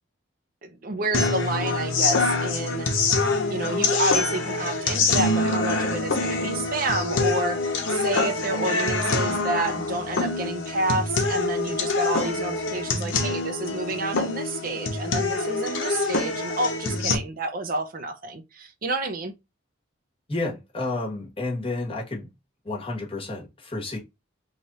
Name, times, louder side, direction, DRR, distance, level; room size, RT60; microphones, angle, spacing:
voice 1, 0.6-2.9 3.5-19.3, right 2 dB, 45° right, 0.5 m, -29 dB
sound 1, 1.1-17.2, left 3 dB, 80° left, 0.8 m, -25 dB
voice 2, 20.3-22.3 22.6-24.0, left 2 dB, 30° left, 1.2 m, -30 dB
3.2 x 2.4 x 4.0 m
head